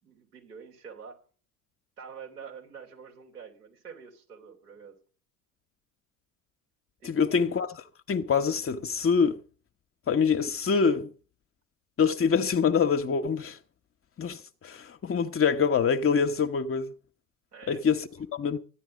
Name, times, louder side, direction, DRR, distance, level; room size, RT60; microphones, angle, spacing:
voice 1, 0.0-1.2 2.0-5.0 7.0-7.4 17.5-17.8, right 6 dB, 85° right, 3.4 m, -46 dB
voice 2, 7.0-7.7 8.1-9.4 10.1-11.1 12.0-13.6 14.2-16.9 17.7-18.6, left 6 dB, 30° left, 1.0 m, -25 dB
14.0 x 9.8 x 5.2 m
figure-of-eight pair, 65°, 45 cm